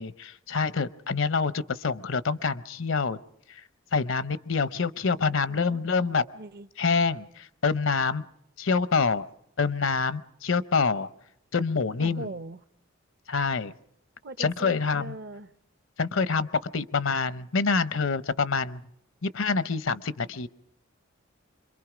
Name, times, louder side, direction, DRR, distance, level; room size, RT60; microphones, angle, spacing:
voice 1, 0.0-3.2 3.9-6.2 6.8-7.3 7.6-8.2 8.6-9.3 9.6-11.1 11.5-12.3 13.3-13.7 14.4-15.1 16.0-16.5 16.7-18.8 19.2-20.5, left 4 dB, 70° left, 0.7 m, -26 dB
voice 2, 5.5-5.8 6.3-6.7 12.0-12.6 14.2-15.5, right 2 dB, 50° right, 0.8 m, -40 dB
26.0 x 23.0 x 5.0 m
head